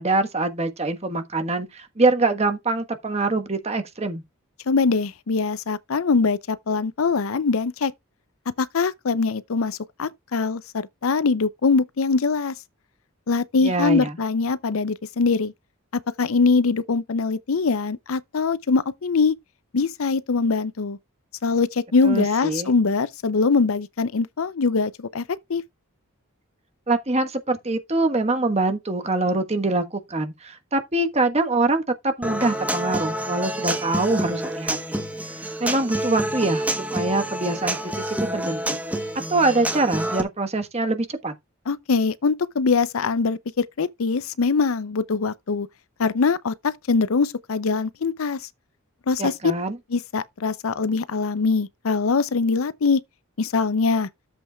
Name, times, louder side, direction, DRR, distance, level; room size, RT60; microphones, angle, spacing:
voice 1, 0.0-4.2 13.6-14.1 22.0-22.7 26.9-35.0 35.6-38.8 39.3-41.3 49.2-49.8, right 2 dB, 30° right, 1.3 m, -24 dB
voice 2, 4.7-7.9 8.6-12.5 13.3-15.5 15.9-19.4 19.7-21.0 21.4-25.2 25.5-25.6 41.7-45.7 46.0-48.4 49.1-49.5 49.9-53.0 53.4-54.1, left 4 dB, 70° left, 0.6 m, -22 dB
Human voice / Acoustic guitar, 32.2-40.2, right 1 dB, 5° right, 1.1 m, -28 dB
12.0 x 7.6 x 2.3 m
head